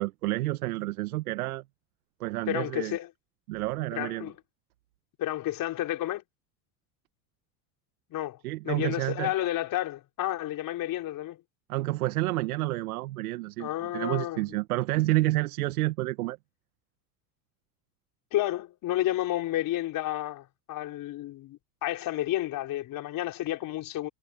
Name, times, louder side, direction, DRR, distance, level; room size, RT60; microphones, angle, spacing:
voice 1, 0.0-1.6 2.2-3.0 3.5-4.3 8.4-9.3 11.7-16.4, right 18 dB, 90° right, 1.0 m, -29 dB
voice 2, 2.5-3.1 3.9-4.4 5.2-6.2 8.1-8.4 8.6-11.4 13.6-14.6 18.3-24.1, left 14 dB, 50° left, 4.1 m, -31 dB
supercardioid pair, 100°, 43 cm